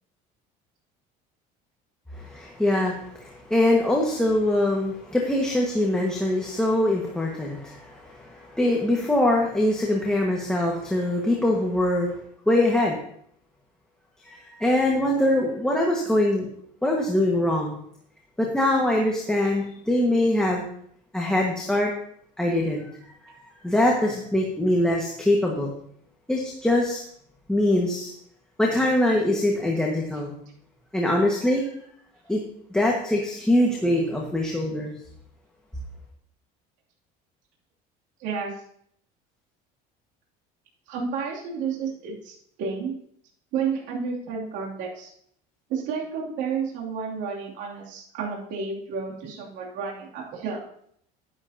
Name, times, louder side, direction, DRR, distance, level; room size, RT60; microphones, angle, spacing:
voice 1, 2.1-12.1 12.5-13.0 14.2-16.5 16.8-17.8 18.4-20.6 21.1-21.9 22.4-22.9 23.2-23.3 23.6-25.7 26.3-27.0 27.5-28.1 28.6-30.3 30.9-31.6 32.3-32.4 32.7-34.9, left 1 dB, 5° left, -2 dB, 1.6 m, -23 dB
voice 2, 38.2-38.5 40.9-43.0 43.5-45.1 45.7-50.6, right 5 dB, 70° right, -3 dB, 2.9 m, -31 dB
11.0 x 11.0 x 2.9 m, 0.67 s
cardioid pair, 130°, 19 cm